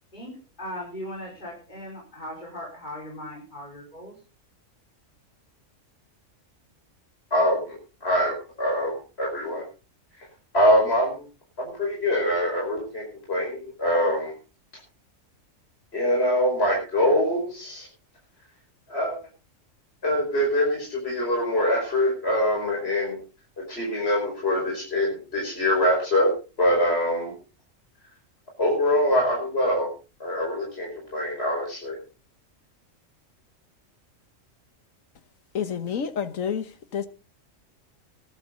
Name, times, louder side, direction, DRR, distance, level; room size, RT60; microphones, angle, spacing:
voice 1, 0.1-4.1, left 1 dB, 35° left, 5.1 m, -38 dB
voice 2, 7.3-9.6 10.5-11.2 11.6-14.3 15.9-17.9 18.9-19.2 20.0-23.2 23.6-27.3 28.6-29.9 30.2-32.0, equal, 50° left, 5.5 m, -24 dB
voice 3, 35.5-36.7 36.9-37.1, left 7 dB, 85° left, 1.6 m, -28 dB
19.0 x 11.5 x 3.9 m
omnidirectional pair, 1.3 m